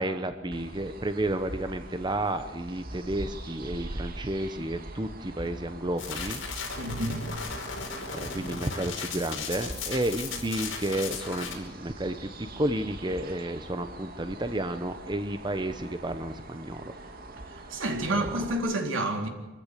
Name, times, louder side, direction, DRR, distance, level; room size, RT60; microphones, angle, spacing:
voice 1, 0.0-6.4 8.1-16.8 17.5-17.8 18.2-18.3, right 1 dB, 25° right, 0.9 m, -31 dB
sound 1, 0.5-18.5, right 2 dB, 50° right, 2.2 m, -43 dB
sound 2, 6.0-11.5, left 5 dB, 70° left, 5.1 m, -36 dB
voice 2, 6.8-7.3 17.5-19.3, right 1 dB, 85° right, 3.8 m, -29 dB
25.5 x 15.0 x 8.4 m
head